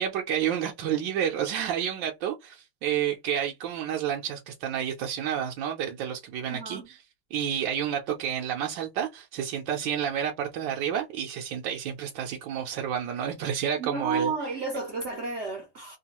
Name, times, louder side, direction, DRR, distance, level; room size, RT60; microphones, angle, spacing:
voice 1, 0.0-6.8 7.3-14.3, right 9 dB, 75° right, 1.2 m, -30 dB
voice 2, 6.5-6.9 13.8-16.0, right 4 dB, 55° right, 0.8 m, -32 dB
3.5 x 2.3 x 2.8 m
omnidirectional pair, 2.2 m